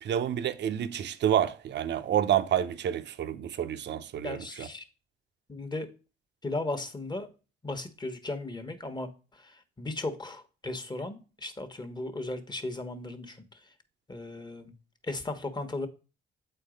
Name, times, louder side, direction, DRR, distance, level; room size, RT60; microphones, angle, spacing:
voice 1, 0.0-4.7, right 10 dB, 60° right, 0.7 m, -29 dB
voice 2, 4.2-4.8 5.5-5.9 6.4-7.3 7.6-13.4 14.1-14.7 15.1-15.9, left 2 dB, 20° left, 1.2 m, -36 dB
8.2 x 4.5 x 5.0 m
cardioid pair, 90°, 20 cm